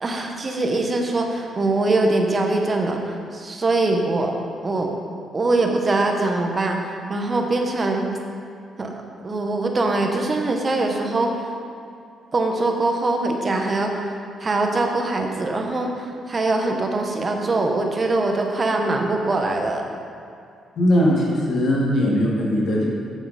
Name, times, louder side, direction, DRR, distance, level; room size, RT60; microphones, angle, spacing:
voice 1, 0.0-4.3 4.6-4.9 5.3-6.8 7.1-8.1 8.8-8.9 9.2-11.4 12.3-14.0 14.4-19.8, right 2 dB, 35° right, 3 dB, 1.0 m, -22 dB
voice 2, 20.8-22.9, equal, 65° left, -3 dB, 1.9 m, -19 dB
7.4 x 7.0 x 4.1 m, 2.3 s
cardioid pair, 90°, 0 cm